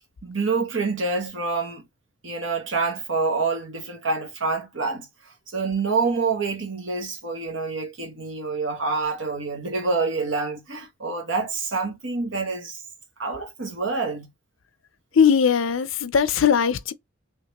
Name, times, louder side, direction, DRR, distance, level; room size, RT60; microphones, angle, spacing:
voice 1, 0.2-1.8 2.2-5.1 5.5-12.8 13.2-14.3, right 4 dB, 75° right, 1.2 m, -27 dB
voice 2, 15.1-16.9, left 7 dB, 90° left, 0.5 m, -19 dB
3.6 x 2.9 x 2.9 m
head